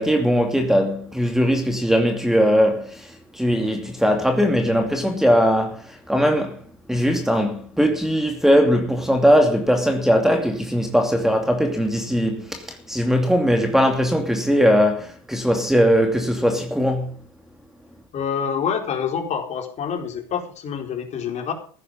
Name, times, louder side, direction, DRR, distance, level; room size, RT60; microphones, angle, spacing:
voice 1, 0.0-3.1 3.3-5.8 6.1-6.6 6.9-17.1, equal, ahead, 2.6 m, -19 dB
voice 2, 18.1-21.5, left 7 dB, 40° left, 4.4 m, -27 dB
15.0 x 10.5 x 5.4 m
hypercardioid pair, 90°, 18 cm